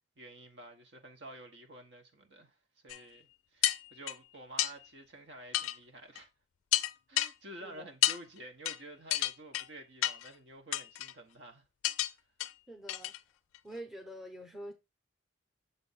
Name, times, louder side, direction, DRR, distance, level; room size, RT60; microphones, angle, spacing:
voice 1, 0.2-2.6 2.8-6.3 7.1-11.6, right 1 dB, 55° right, 1.0 m, -50 dB
sound 1, 2.9-3.0 3.6-4.2 4.6-4.7 5.5-5.8 6.2-6.3 6.7-7.3 8.0-8.2 8.7-8.8 9.1-9.7 10.0-10.3 10.7-11.1 11.8-12.1 12.4-12.5 12.9-13.2 13.5-13.6, left 14 dB, 85° left, 0.4 m, -30 dB
voice 2, 12.7-13.1 13.6-14.7, right 1 dB, ahead, 0.9 m, -45 dB
6.8 x 2.5 x 5.5 m
head